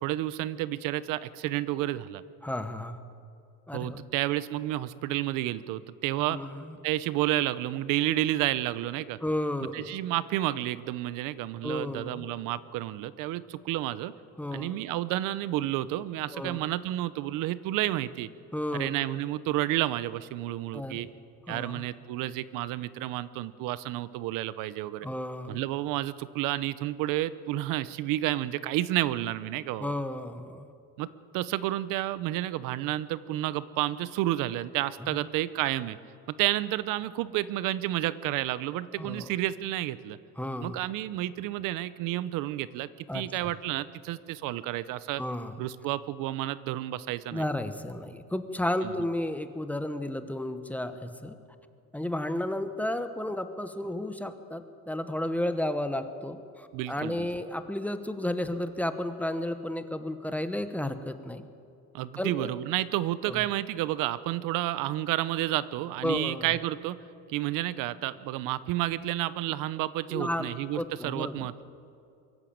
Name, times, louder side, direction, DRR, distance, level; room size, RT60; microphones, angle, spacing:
voice 1, 0.0-2.2 3.7-6.4 6.8-9.2 9.7-14.1 14.5-18.3 18.7-21.1 21.5-25.1 25.5-29.9 31.0-31.1 31.3-36.0 36.4-40.2 40.6-45.2 45.6-47.4 48.8-48.9 56.7-57.3 61.9-67.0 67.3-71.6, right 15 dB, 90° right, 16 dB, 0.8 m, -30 dB
voice 2, 2.4-3.0 3.7-4.0 6.3-6.7 9.2-9.9 11.6-12.3 14.4-14.7 16.3-16.7 18.5-18.9 20.7-21.1 21.5-21.8 25.0-25.6 29.8-30.7 35.0-35.2 39.0-39.3 40.4-40.8 43.1-43.5 45.2-45.6 47.3-51.4 51.9-61.4 62.2-62.5 63.3-63.4 66.0-66.4 70.1-71.5, left 1 dB, 5° left, 9 dB, 1.1 m, -33 dB
23.0 x 14.5 x 8.7 m, 2.5 s
cardioid pair, 135°, 31 cm